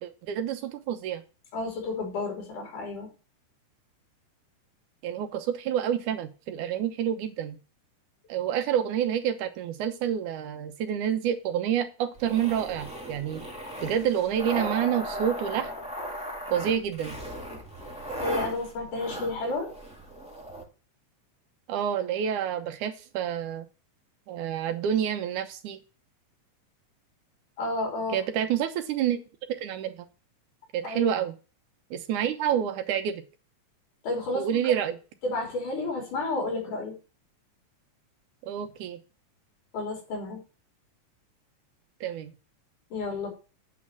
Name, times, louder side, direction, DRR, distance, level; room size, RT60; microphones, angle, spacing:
voice 1, 0.0-1.2 5.0-7.6 8.3-13.5 13.8-15.7 16.5-17.2 21.7-23.7 24.3-25.8 28.1-29.2 29.6-30.1 30.7-31.3 31.9-33.2 34.4-35.0 38.5-39.0 42.0-42.3, right 9 dB, 75° right, 8 dB, 2.4 m, -28 dB
voice 2, 1.5-3.1 18.2-19.7 27.6-28.2 30.8-31.1 34.0-34.6 35.2-36.9 39.7-40.4 42.9-43.3, left 2 dB, 75° left, 0 dB, 4.7 m, -31 dB
sound 1, 12.2-20.6, equal, 5° right, 1.2 m, -37 dB
8.4 x 4.5 x 7.2 m, 0.34 s
omnidirectional pair, 3.6 m